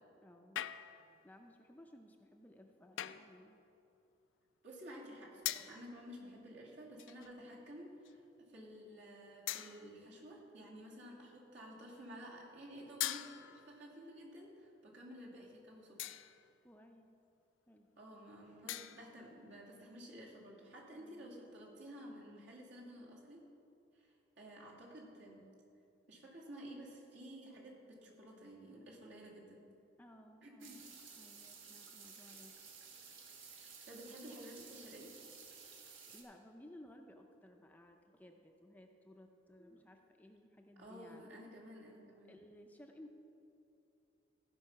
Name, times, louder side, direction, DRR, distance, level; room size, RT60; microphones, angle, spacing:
voice 1, 0.2-0.7 1.2-3.6 6.2-6.4 16.6-17.1 17.7-17.9 18.6-19.0 20.9-21.4 30.0-32.6 36.1-41.3 42.3-43.1, left 1 dB, 10° left, 3 dB, 0.5 m, -59 dB
sound 1, 0.6-1.2 3.0-3.4 5.4-5.9 7.0-7.4 8.0-8.2 9.5-10.1 13.0-13.8 16.0-16.5 18.7-19.2, left 13 dB, 85° left, 0.4 m, -42 dB
voice 2, 4.6-16.2 18.0-23.4 23.9-25.4 26.1-29.6 30.4-30.8 33.9-35.1 40.8-42.4, equal, 70° right, -4 dB, 2.3 m, -52 dB
sound 2, 30.6-36.2, right 5 dB, 90° right, 1.4 m, -55 dB
15.5 x 5.3 x 5.8 m, 2.7 s
head